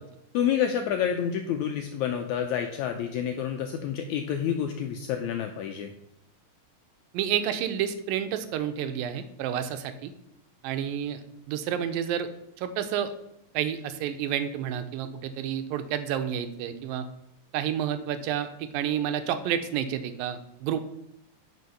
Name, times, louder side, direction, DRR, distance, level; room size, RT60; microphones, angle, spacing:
voice 1, 0.3-5.9, left 9 dB, 85° left, 4 dB, 1.7 m, -28 dB
voice 2, 7.1-10.1 10.6-11.2 11.5-12.3 12.6-13.1 13.5-17.1 17.5-20.8, right 9 dB, 90° right, 10 dB, 2.4 m, -30 dB
9.4 x 5.5 x 5.6 m, 0.79 s
omnidirectional pair, 4.1 m